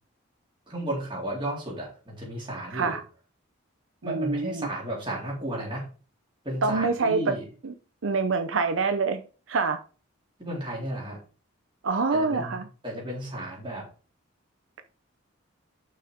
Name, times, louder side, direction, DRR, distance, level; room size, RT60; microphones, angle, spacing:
voice 1, 0.7-3.0 4.0-5.9 6.4-7.4 10.4-11.2 12.1-13.9, right 1 dB, 25° right, 3.8 m, -33 dB
voice 2, 2.7-3.0 4.0-4.7 6.6-7.3 7.6-7.7 8.0-9.2 9.5-9.8 11.8-12.6, right 4 dB, 70° right, 0.6 m, -25 dB
6.5 x 5.8 x 5.0 m
head